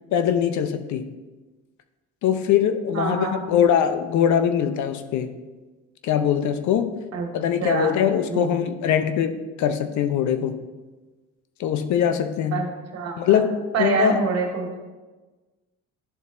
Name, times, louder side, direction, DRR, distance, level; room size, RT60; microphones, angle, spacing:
voice 1, 0.1-1.0 2.2-5.3 6.0-6.9 7.3-10.5 11.6-12.6 13.2-13.5 13.8-14.2, left 9 dB, 65° left, 9 dB, 0.7 m, -22 dB
voice 2, 2.9-3.4 7.1-7.3 7.6-7.9 8.3-8.5 12.5-12.7 12.9-13.4 13.7-14.8, right 4 dB, 55° right, 1 dB, 1.7 m, -25 dB
12.0 x 4.0 x 2.6 m, 1.2 s
supercardioid pair, 75°, 31 cm